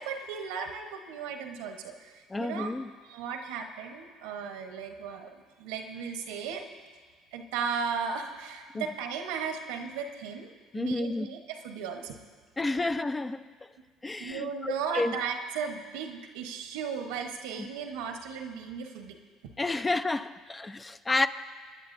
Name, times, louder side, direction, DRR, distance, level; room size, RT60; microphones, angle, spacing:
voice 1, 0.0-2.7 3.0-6.7 7.3-12.2 14.2-19.2, right 6 dB, 85° right, 1.1 m, -36 dB
voice 2, 2.3-2.9 8.7-8.8 10.7-11.3 12.6-13.5 14.0-15.2 17.6-17.7 19.6-21.3, left 2 dB, 20° left, 0.5 m, -30 dB
26.0 x 10.5 x 2.7 m
supercardioid pair, 75°, 0 cm